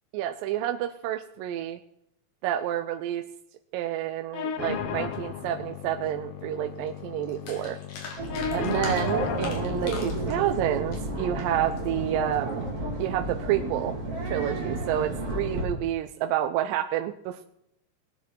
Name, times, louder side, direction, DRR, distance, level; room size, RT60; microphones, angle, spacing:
voice 1, 0.1-1.8 2.4-3.2 3.7-7.8 8.5-12.7 13.0-13.9 14.2-17.4, right 12 dB, 85° right, 6 dB, 2.4 m, -29 dB
sound 1, 4.3-12.3, left 7 dB, 85° left, 1.2 m, -36 dB
sound 2, 6.8-6.9 7.2-11.9 12.4-12.7, left 4 dB, 70° left, 3.9 m, -41 dB
sound 3, 8.2-15.6, right 2 dB, 45° right, 3.6 m, -32 dB
19.5 x 9.3 x 4.5 m, 0.78 s
omnidirectional pair, 3.9 m